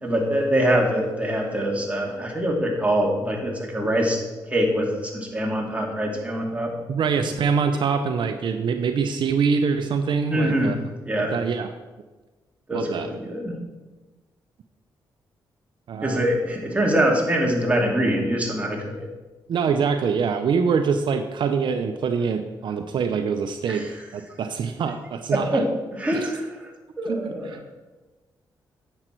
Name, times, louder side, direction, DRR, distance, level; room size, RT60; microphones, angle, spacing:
voice 1, 0.0-6.7 10.3-10.7 11.0-11.4 12.7-13.6 16.0-19.1 23.7-24.0 25.3-25.7 25.9-26.7 27.0-27.6, right 1 dB, 15° right, -1 dB, 2.5 m, -24 dB
voice 2, 6.9-10.8 11.2-11.7 12.7-13.1 15.9-16.2 19.5-25.7 26.1-26.3 27.1-27.6, right 6 dB, 70° right, 7 dB, 0.6 m, -24 dB
10.0 x 7.8 x 4.5 m, 1.2 s
cardioid pair, 75°, 8 cm